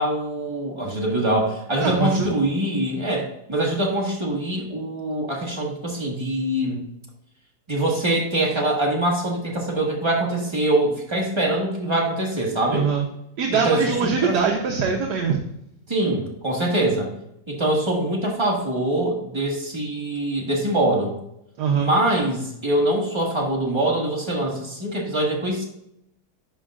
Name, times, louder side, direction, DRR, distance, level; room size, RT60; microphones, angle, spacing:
voice 1, 0.0-6.8 7.7-12.9 13.5-14.4 15.9-17.1 17.5-21.1 21.7-25.7, right 1 dB, 15° right, -2 dB, 1.5 m, -23 dB
voice 2, 1.8-2.3 12.7-13.1 13.4-15.4 21.6-21.9, right 6 dB, 65° right, 0 dB, 1.3 m, -22 dB
10.5 x 5.5 x 2.5 m, 0.80 s
omnidirectional pair, 2.1 m